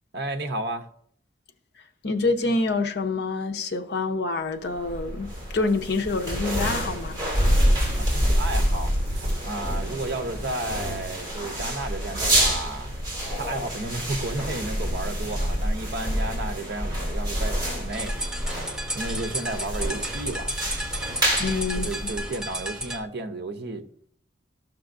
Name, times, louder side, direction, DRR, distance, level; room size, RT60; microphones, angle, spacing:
voice 1, 0.1-0.9 8.0-12.9 13.4-18.2 18.9-20.6 21.8-23.8, right 2 dB, 60° right, 0.7 m, -33 dB
voice 2, 2.0-5.3 5.5-7.2 21.4-21.9, left 3 dB, 60° left, 0.7 m, -26 dB
sound 1, 4.7-22.6, equal, 20° right, 2.7 m, -27 dB
sound 2, 17.9-23.0, right 1 dB, 5° right, 0.5 m, -33 dB
13.5 x 6.0 x 2.5 m
head